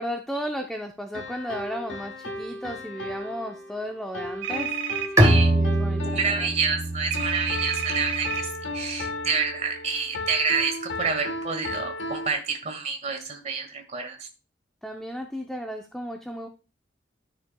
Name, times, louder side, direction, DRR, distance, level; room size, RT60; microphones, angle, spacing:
voice 1, 0.0-4.7 5.5-6.5 14.8-16.5, equal, 5° left, 3 dB, 0.6 m, -34 dB
sound 1, 1.1-12.3, left 2 dB, 70° left, 1.2 m, -35 dB
sound 2, 4.4-5.1 7.1-8.4, right 10 dB, 80° right, 1.0 m, -30 dB
Bowed string instrument, 5.2-8.6, right 1 dB, 15° right, 1.6 m, -24 dB
voice 2, 5.2-5.5 6.1-14.3, right 5 dB, 35° right, 4 dB, 1.7 m, -28 dB
12.5 x 6.2 x 2.2 m, 0.31 s
head